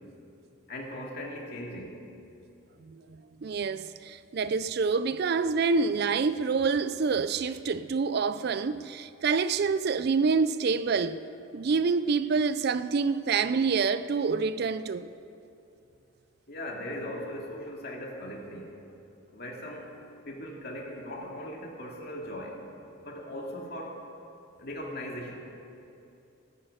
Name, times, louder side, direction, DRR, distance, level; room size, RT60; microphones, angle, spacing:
voice 1, 0.7-2.0 9.1-9.2 16.5-18.8 19.3-19.9 20.2-22.6 23.0-24.0 24.6-25.3, left 1 dB, 50° left, 2.3 m, -39 dB
voice 2, 2.9-11.2 11.5-15.1, right 5 dB, 50° right, 0.4 m, -27 dB
13.5 x 11.0 x 7.8 m
head